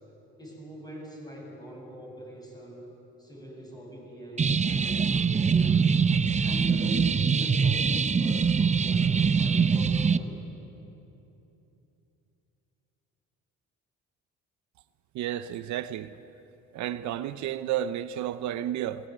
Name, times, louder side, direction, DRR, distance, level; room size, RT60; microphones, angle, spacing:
voice 1, 0.4-2.9 3.2-5.9 6.4-10.4, equal, 15° left, 7.9 m, -43 dB
sound 1, 4.4-10.2, right 5 dB, 25° right, 0.7 m, -23 dB
voice 2, 15.1-16.2 16.7-19.1, right 11 dB, 75° right, 0.8 m, -32 dB
20.5 x 19.5 x 9.5 m
cardioid pair, 105°, 29 cm